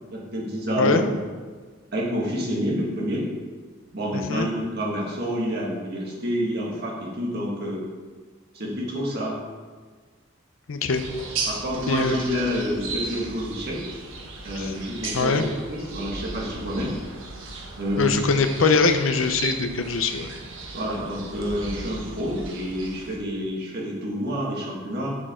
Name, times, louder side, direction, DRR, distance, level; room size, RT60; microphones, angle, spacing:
voice 1, 0.1-1.1 1.9-3.3 3.9-7.8 8.5-9.4 11.5-13.8 14.4-15.4 15.7-16.9 17.8-18.2 20.7-25.2, equal, 50° right, -3 dB, 1.9 m, -28 dB
voice 2, 4.1-4.5 10.7-11.0 11.4-11.5 11.9-12.3 14.6-14.7 15.1-15.4 18.0-20.3, left 4 dB, 80° left, 8 dB, 0.6 m, -22 dB
sound 1, 10.9-23.2, right 3 dB, 80° right, 1.2 m, -36 dB
7.6 x 6.2 x 3.7 m, 1.5 s
head